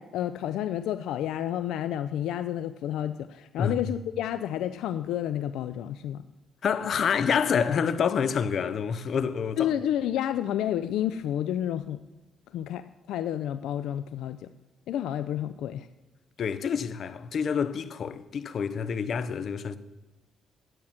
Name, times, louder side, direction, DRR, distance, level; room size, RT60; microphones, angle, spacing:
voice 1, 0.0-6.2 9.6-12.0 12.5-14.5 14.9-15.9, left 11 dB, 85° left, 0.4 m, -30 dB
voice 2, 6.6-9.7 16.4-19.8, left 7 dB, 55° left, 0.8 m, -27 dB
11.0 x 8.8 x 5.8 m
cardioid pair, 90°, 0 cm